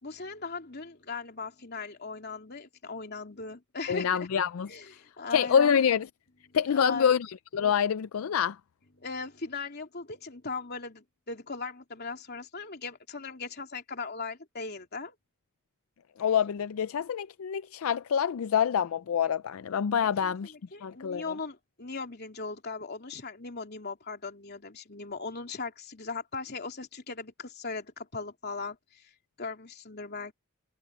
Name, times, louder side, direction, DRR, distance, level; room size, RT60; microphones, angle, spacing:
voice 1, 0.0-4.3 4.7-5.8 6.5-7.2 9.0-15.1 20.0-29.0 29.4-30.3, left 4 dB, 50° left, 3.2 m, -38 dB
voice 2, 3.9-5.0 5.3-6.1 6.5-8.6 16.2-20.5 20.8-21.3, left 7 dB, 75° left, 0.4 m, -26 dB
head